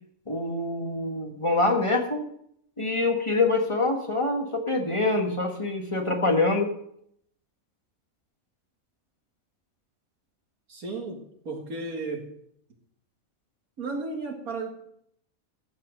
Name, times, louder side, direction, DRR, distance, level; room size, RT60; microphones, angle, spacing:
voice 1, 0.3-2.2 2.8-6.7, left 2 dB, 20° left, 2 dB, 1.6 m, -25 dB
voice 2, 10.7-12.3 13.8-14.7, right 3 dB, 80° right, 2 dB, 2.4 m, -34 dB
15.0 x 5.8 x 6.5 m, 0.70 s
omnidirectional pair, 1.5 m